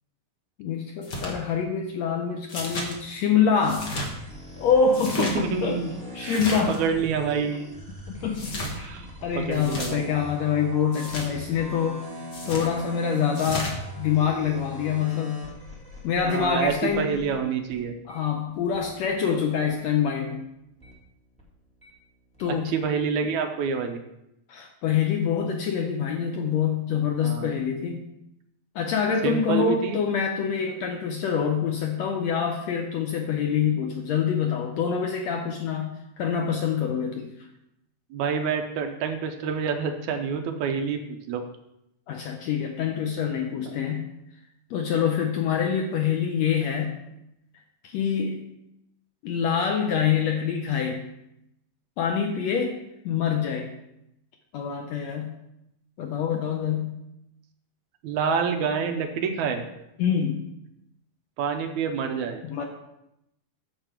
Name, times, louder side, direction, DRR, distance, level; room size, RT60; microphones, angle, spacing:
voice 1, 0.6-3.9 4.6-5.8 6.1-6.8 8.1-8.9 9.2-15.5 16.0-17.1 18.1-20.4 22.4-22.7 24.5-28.0 28.8-37.5 42.1-44.1 44.7-47.0 47.8-48.4 49.2-51.0 52.0-52.8 53.1-53.7 54.5-55.3 56.0-57.0 60.0-60.4 62.4-62.6, left 7 dB, 75° left, 3 dB, 1.6 m, -26 dB
sound 1, 1.0-1.3 2.5-2.9 3.6-4.1 4.9-5.4 6.2-6.8 8.3-8.7 9.5-9.9 10.9-11.3 12.3-12.7 13.3-13.7, left 1 dB, 45° left, 1.6 m, -33 dB
sound 2, 3.6-19.3 19.6-21.9 22.2-22.7, equal, 5° left, 1.1 m, -41 dB
voice 2, 5.2-5.9 6.2-7.6 8.8-9.1 9.4-10.1 16.2-18.0 22.5-24.0 27.2-27.6 29.2-30.0 38.1-41.0 41.3-41.4 43.7-43.8 58.0-59.6 61.4-62.4, right 6 dB, 75° right, 5 dB, 2.0 m, -27 dB
9.2 x 6.9 x 4.4 m, 0.84 s
omnidirectional pair, 3.7 m